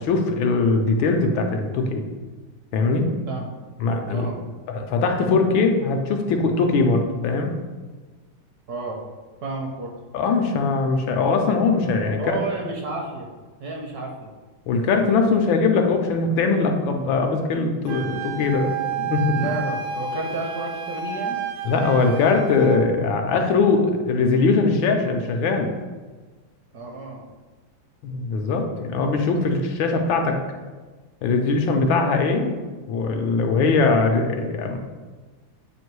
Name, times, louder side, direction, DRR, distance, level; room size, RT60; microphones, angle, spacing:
voice 1, 0.0-2.0 2.7-3.1 3.8-4.3 4.7-7.5 10.1-12.4 14.7-18.7 19.0-19.4 21.6-25.7 28.0-30.4 31.2-32.5 32.9-34.8, left 4 dB, 75° left, 4 dB, 1.4 m, -21 dB
voice 2, 8.7-9.0 9.4-9.9 12.2-13.3 13.6-14.3 19.3-21.4 26.7-27.2, right 3 dB, 60° right, 0 dB, 1.1 m, -31 dB
Wind instrument woodwind instrument, 17.9-22.8, right 6 dB, 80° right, 1.5 m, -30 dB
7.8 x 2.6 x 4.6 m, 1.3 s
omnidirectional pair, 2.3 m